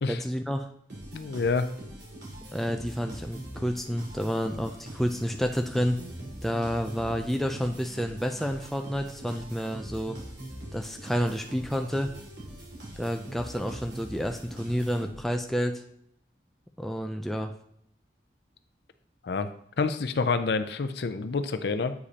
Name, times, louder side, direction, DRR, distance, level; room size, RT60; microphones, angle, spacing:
voice 1, 0.1-0.7 2.5-6.0 6.4-10.2 10.7-12.1 13.0-15.8 16.8-17.5, equal, ahead, 4 dB, 0.3 m, -29 dB
sound 1, 0.9-15.5, right 1 dB, 80° right, 2.4 m, -43 dB
voice 2, 1.1-1.7 19.2-19.5 19.8-21.9, left 4 dB, 70° left, 10 dB, 0.4 m, -27 dB
8.1 x 5.0 x 2.9 m, 0.68 s
head